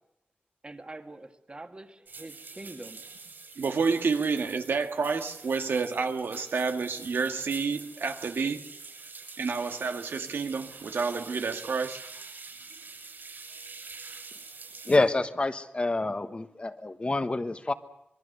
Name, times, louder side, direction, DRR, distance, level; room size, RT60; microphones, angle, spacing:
voice 1, 0.6-3.0, right 2 dB, 25° right, 2.0 m, -44 dB
sound 1, 2.1-15.0, right 4 dB, 60° right, 6.5 m, -46 dB
voice 2, 3.6-8.7 9.4-12.0, right 5 dB, 85° right, 1.8 m, -29 dB
voice 3, 14.8-17.7, left 2 dB, 30° left, 1.3 m, -27 dB
26.0 x 22.0 x 6.7 m
wide cardioid pair, 120°, 4 cm